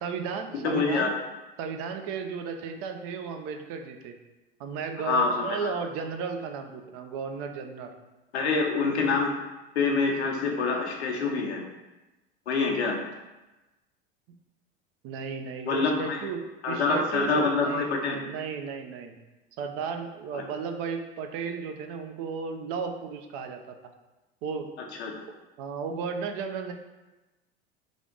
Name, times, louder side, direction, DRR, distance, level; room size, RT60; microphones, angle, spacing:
voice 1, 0.0-1.1 1.6-4.2 4.6-7.9 15.0-19.1 19.6-23.7 24.4-24.7 25.6-26.7, right 5 dB, 45° right, 5 dB, 0.5 m, -34 dB
voice 2, 0.6-1.1 5.1-5.7 8.3-9.3 9.7-11.6 12.5-12.9 15.7-16.2 16.6-18.2 20.3-20.4 25.0-25.1, left 4 dB, 85° left, 0 dB, 0.8 m, -26 dB
3.4 x 2.5 x 3.8 m, 1.1 s
hypercardioid pair, 90°, 32 cm